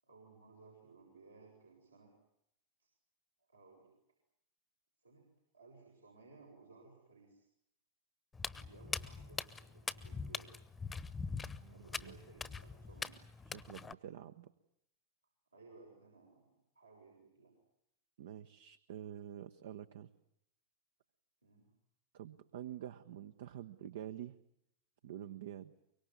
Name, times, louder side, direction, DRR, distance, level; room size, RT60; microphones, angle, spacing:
voice 1, 0.0-2.1 2.8-2.9 3.4-3.9 5.0-5.2 5.5-7.5 8.5-10.7 11.7-13.1 15.5-17.5 21.4-21.7, right 3 dB, 85° right, -2 dB, 6.8 m, -60 dB
Walk footsteps, 8.3-13.9, left 4 dB, 15° left, 1.1 m, -43 dB
voice 2, 11.4-12.2 13.5-14.5 18.2-20.1 22.1-24.4 25.0-25.7, right 11 dB, 60° right, 11 dB, 1.0 m, -48 dB
24.5 x 23.5 x 9.5 m, 0.77 s
figure-of-eight pair, 90°, 0 cm